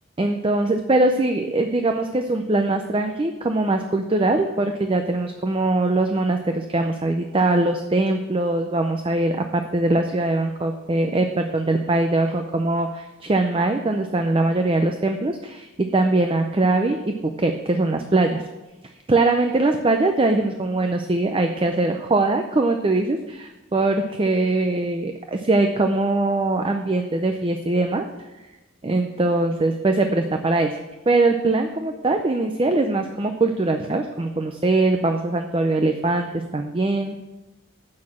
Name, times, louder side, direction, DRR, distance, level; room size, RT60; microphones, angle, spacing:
voice 1, 0.2-18.4 19.1-28.1 28.8-30.8 31.1-37.2, right 2 dB, 25° right, 5 dB, 0.5 m, -22 dB
8.6 x 6.3 x 7.3 m, 1.1 s
head